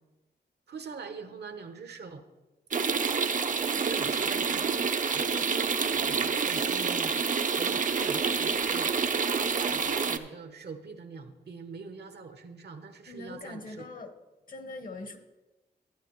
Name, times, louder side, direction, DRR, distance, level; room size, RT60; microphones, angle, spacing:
voice 1, 0.7-2.3 3.8-4.7 5.1-8.9 9.2-13.9, right 5 dB, 70° right, 8 dB, 0.9 m, -43 dB
sound 1, 2.7-10.2, right 5 dB, 50° right, 0.5 m, -28 dB
voice 2, 13.1-14.1 14.5-15.2, left 2 dB, 50° left, 7 dB, 1.0 m, -41 dB
11.5 x 9.5 x 3.0 m, 1.1 s
cardioid pair, 75°, 18 cm